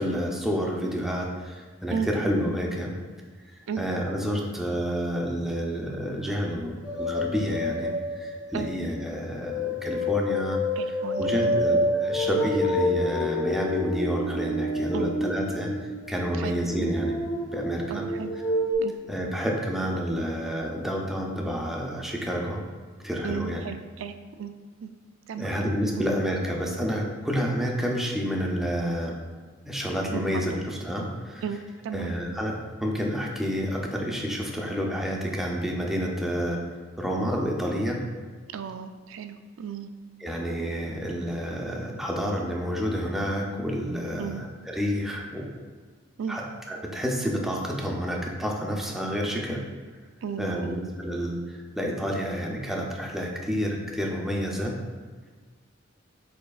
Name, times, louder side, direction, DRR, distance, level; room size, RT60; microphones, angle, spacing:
voice 1, 0.0-2.9 3.8-10.6 11.2-15.7 16.1-17.1 17.5-18.0 19.1-22.6 23.0-23.6 25.4-29.1 29.7-31.4 31.9-36.6 37.0-38.0 40.2-45.5 46.3-46.4 46.7-49.6 50.4-51.4 51.8-54.8, equal, ahead, -1 dB, 0.5 m, -29 dB
sound 1, 6.8-18.7, left 1 dB, 20° left, 0.9 m, -28 dB
voice 2, 10.8-11.6 14.9-15.1 16.4-16.9 17.9-18.3 18.8-18.9 23.2-24.5 24.8-24.9 25.3-26.1 30.1-30.6 31.4-31.6 31.8-32.1 38.5-39.9 44.2-44.4 46.2-46.4 50.2-50.8, right 6 dB, 65° right, 9 dB, 0.3 m, -34 dB
5.2 x 4.3 x 2.3 m, 1.5 s
head